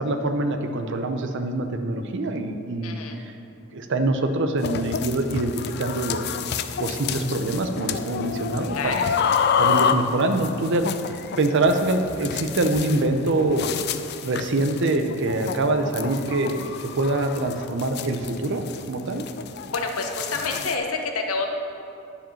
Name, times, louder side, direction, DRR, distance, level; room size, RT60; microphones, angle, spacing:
voice 1, 0.0-3.0 3.7-6.4 6.8-9.0 9.6-10.8 11.4-13.7 14.2-19.2, right 2 dB, 60° right, 7 dB, 0.7 m, -24 dB
voice 2, 2.8-3.2 8.7-9.1 19.7-21.5, left 3 dB, 90° left, 3 dB, 1.0 m, -28 dB
sound 1, 4.6-20.8, left 7 dB, 50° left, 0.4 m, -29 dB
10.5 x 4.9 x 5.7 m, 2.7 s
head